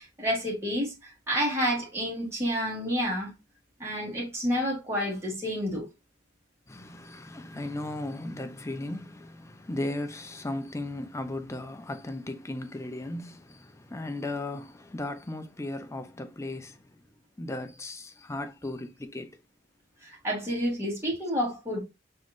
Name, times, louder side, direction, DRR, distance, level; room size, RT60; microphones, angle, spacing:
voice 1, 0.0-3.3 3.8-5.9 20.0-21.8, equal, 15° right, 1.9 m, -29 dB
voice 2, 6.7-17.0 17.4-19.4, left 2 dB, 15° left, 0.5 m, -36 dB
5.5 x 3.1 x 2.4 m
head